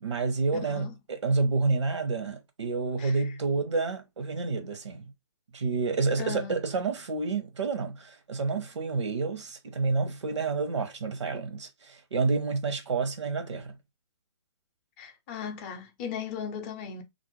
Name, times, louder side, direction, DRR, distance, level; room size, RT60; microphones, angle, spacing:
voice 1, 0.0-5.1 5.5-13.7, right 4 dB, 75° right, 0.9 m, -29 dB
voice 2, 0.6-0.9 3.0-3.3 6.2-6.6 15.0-17.0, left 7 dB, 25° left, 0.5 m, -37 dB
2.5 x 2.0 x 3.1 m
hypercardioid pair, 140°, 15 cm